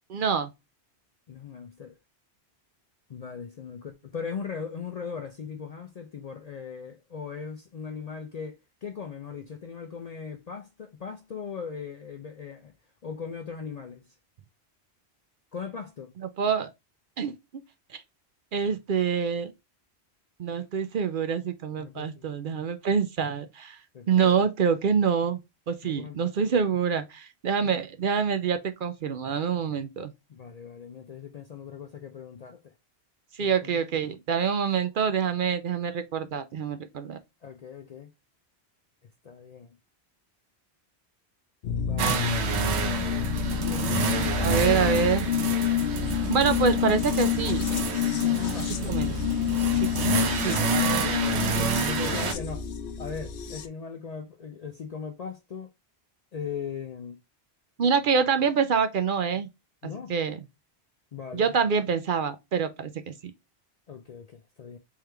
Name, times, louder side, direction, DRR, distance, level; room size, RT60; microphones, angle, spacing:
voice 1, 0.1-0.5 16.4-16.7 17.2-17.3 17.9-18.0 18.5-19.5 20.4-23.8 24.1-25.4 25.7-30.1 33.4-37.2 44.4-45.2 46.1-47.6 48.6-49.1 49.7-49.9 50.4-50.5 57.8-59.5 60.1-60.4 61.3-62.9 63.2-63.3, right 6 dB, 60° right, 0.6 m, -26 dB
voice 2, 1.3-2.0 3.1-12.7 13.0-14.1 15.5-16.1 21.8-22.3 23.9-24.5 25.8-26.3 30.3-32.7 33.4-33.8 37.4-38.1 39.2-39.8 41.7-42.4 43.5-44.9 45.8-46.2 48.2-49.0 50.1-52.6 53.0-55.7 56.3-57.2 59.8-60.1 61.1-61.6 63.9-64.8, left 6 dB, 55° left, 0.4 m, -39 dB
sound 1, 41.6-53.7, left 9 dB, 75° left, 0.8 m, -28 dB
sound 2, 42.0-52.3, right 6 dB, 85° right, 1.0 m, -29 dB
3.6 x 3.2 x 3.3 m
omnidirectional pair, 1.1 m